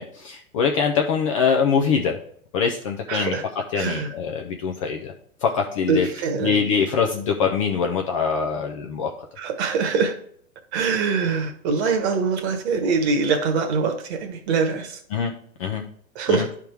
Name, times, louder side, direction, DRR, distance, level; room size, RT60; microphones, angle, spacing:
voice 1, 0.0-2.2 2.5-3.3 3.7-5.1 5.4-6.1 6.4-9.1 15.1-15.3 15.6-15.8 16.3-16.5, left 6 dB, 25° left, 2 dB, 0.4 m, -23 dB
voice 2, 3.1-3.4 3.7-4.1 5.9-6.6 9.4-10.2 10.7-15.0 16.1-16.5, right 5 dB, 50° right, 7 dB, 1.4 m, -23 dB
10.5 x 3.6 x 4.5 m, 0.63 s
hypercardioid pair, 130°, 43 cm